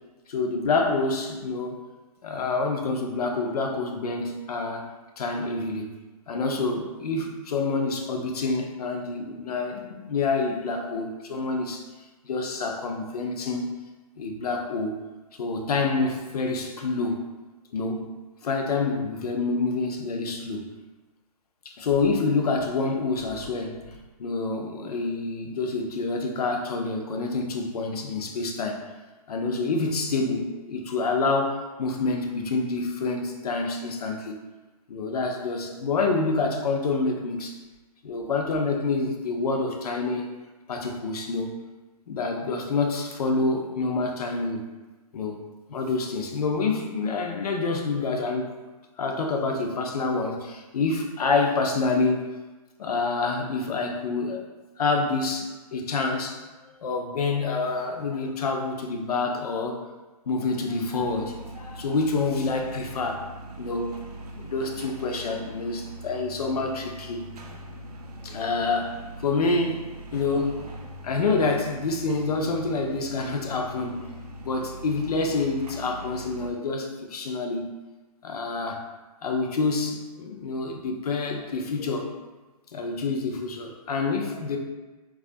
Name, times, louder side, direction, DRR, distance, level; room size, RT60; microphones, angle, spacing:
voice 1, 0.3-1.8 2.2-4.9 5.2-5.9 6.3-11.8 12.2-13.8 14.2-14.9 15.4-17.2 17.7-18.1 18.4-20.7 21.7-23.9 24.2-28.8 29.3-34.4 34.9-37.6 38.0-40.3 40.7-41.5 42.1-44.6 45.1-45.4 45.7-48.5 49.0-52.2 52.8-54.5 54.8-56.4 56.8-59.8 60.3-63.3 63.6-64.0 64.4-67.3 68.2-69.9 70.1-70.8 71.0-74.1 74.4-77.7 78.2-78.8 79.2-82.1 82.7-84.6, left 3 dB, 75° left, 3 dB, 0.5 m, -27 dB
sound 1, 61.0-76.5, right 1 dB, 75° right, 0.4 m, -41 dB
2.3 x 2.1 x 2.5 m, 1.2 s
hypercardioid pair, 150°, 20 cm